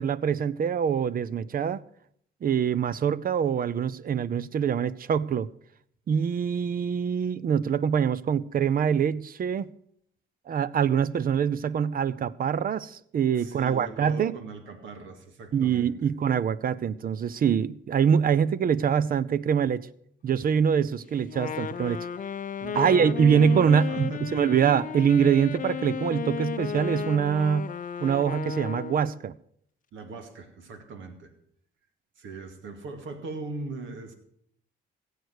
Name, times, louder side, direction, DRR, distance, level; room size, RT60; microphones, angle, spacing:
voice 1, 0.0-1.8 2.4-5.5 6.1-9.7 10.5-14.4 15.5-19.9 20.2-22.1 22.7-27.7 28.0-29.3, right 7 dB, 45° right, 0.6 m, -24 dB
voice 2, 13.4-16.1 22.6-24.4 29.9-31.3 32.2-34.1, right 3 dB, 75° right, 2.3 m, -39 dB
Wind instrument woodwind instrument, 21.2-29.2, left 8 dB, 40° left, 0.6 m, -34 dB
15.5 x 8.2 x 6.5 m
cardioid pair, 90°, 20 cm